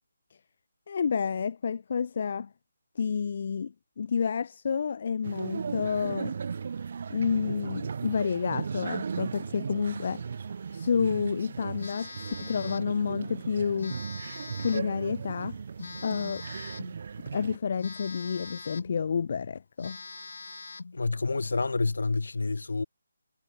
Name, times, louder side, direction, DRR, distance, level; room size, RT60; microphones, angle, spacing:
voice 1, 0.9-2.5 3.0-6.3 7.1-10.2 10.7-14.0 14.6-15.6 16.0-16.4 17.3-20.0, left 6 dB, 35° left, 0.6 m, -30 dB
sound 1, 5.2-17.6, right 6 dB, 35° right, 1.3 m, -36 dB
Telephone, 11.8-13.0 13.8-15.0 15.8-17.0 17.8-19.0 19.4-19.5 19.8-21.0, left 4 dB, 60° left, 1.8 m, -42 dB
voice 2, 20.9-22.8, left 3 dB, 75° left, 0.5 m, -28 dB
hypercardioid pair, 175°, 0 cm